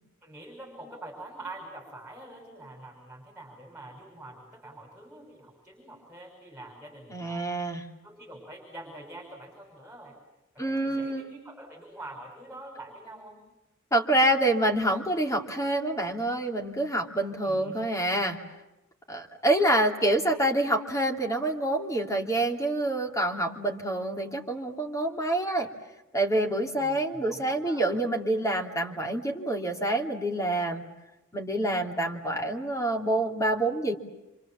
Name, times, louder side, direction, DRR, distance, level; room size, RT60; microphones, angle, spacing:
voice 1, 0.2-7.5 8.0-10.1 10.5-13.4 17.4-17.8 26.8-27.9, right 2 dB, 5° right, -1 dB, 6.4 m, -45 dB
voice 2, 7.1-7.8 10.6-11.3 13.9-18.4 19.1-25.7 26.1-30.8 31.3-33.9, right 1 dB, 15° left, 1 dB, 3.0 m, -27 dB
28.0 x 26.5 x 7.3 m, 0.97 s
head